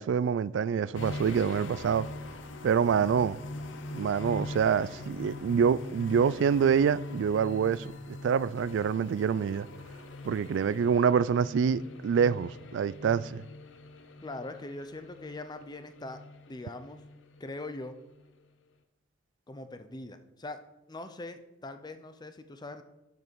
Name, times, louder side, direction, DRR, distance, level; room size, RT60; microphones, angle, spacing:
voice 1, 0.0-2.1 2.6-3.4 3.9-7.9 8.2-9.7 10.2-13.4, right 7 dB, 70° right, 0.3 m, -26 dB
sound 1, 0.9-17.8 18.1-18.3, left 2 dB, 80° left, 0.8 m, -43 dB
voice 2, 14.2-16.2 16.5-17.0 17.4-18.0 19.5-20.6 20.9-22.8, left 2 dB, 20° left, 0.5 m, -41 dB
12.5 x 5.2 x 4.6 m
head